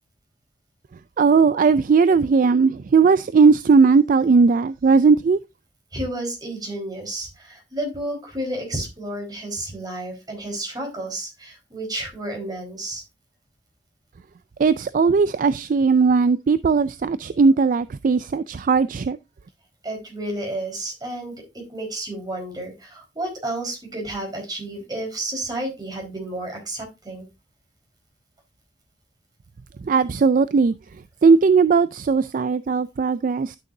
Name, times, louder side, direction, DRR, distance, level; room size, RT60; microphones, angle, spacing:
voice 1, 1.2-5.4 14.6-19.2 29.8-30.7 31.2-33.6, right 5 dB, 50° right, 0.3 m, -18 dB
voice 2, 5.9-13.0 19.8-27.3, right 1 dB, 25° right, 4.4 m, -31 dB
12.0 x 6.5 x 2.6 m
head